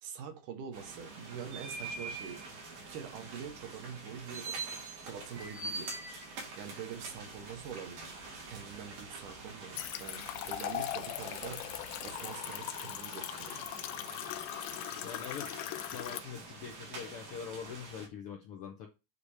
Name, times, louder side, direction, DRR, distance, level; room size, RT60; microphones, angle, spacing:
voice 1, 0.0-13.6, right 7 dB, 80° right, 2.7 m, -45 dB
sound 1, 0.7-18.1, right 3 dB, 65° right, 3.3 m, -45 dB
sound 2, 6.9-12.2, right 3 dB, 25° right, 0.5 m, -59 dB
sound 3, 9.8-16.2, left 14 dB, 90° left, 2.1 m, -40 dB
voice 2, 15.0-15.6 15.9-18.9, left 7 dB, 75° left, 1.3 m, -43 dB
8.1 x 2.8 x 4.8 m
omnidirectional pair, 3.6 m